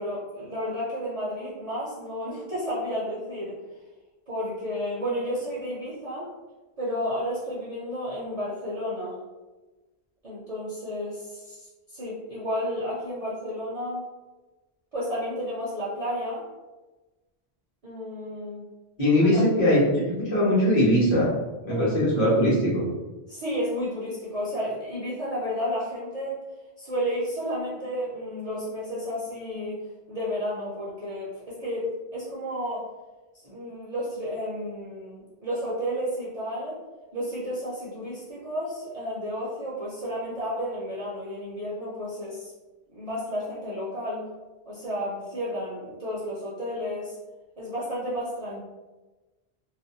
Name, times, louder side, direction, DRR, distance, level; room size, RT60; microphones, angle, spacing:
voice 1, 0.0-3.5 4.3-6.3 6.8-9.2 10.2-14.1 14.9-16.5 17.8-18.6 19.3-19.4 21.7-22.0 23.3-26.4 26.8-29.8 30.1-32.9 33.4-36.8 37.1-42.5 42.9-44.3 44.7-47.2 47.6-48.6, equal, 45° right, -8 dB, 0.6 m, -32 dB
voice 2, 19.0-21.3 21.7-22.8, left 1 dB, 40° left, -7 dB, 1.0 m, -21 dB
2.5 x 2.1 x 2.6 m, 1.1 s
omnidirectional pair, 1.1 m